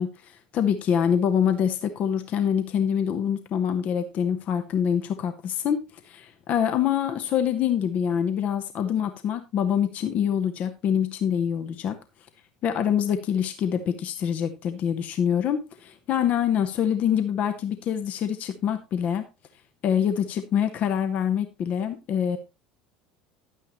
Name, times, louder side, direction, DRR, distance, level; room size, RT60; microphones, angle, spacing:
voice 1, 0.0-12.0 12.6-19.2 19.8-22.4, left 8 dB, 45° left, 8 dB, 1.0 m, -25 dB
11.0 x 9.0 x 3.0 m, 0.27 s
figure-of-eight pair, 70°, 3 cm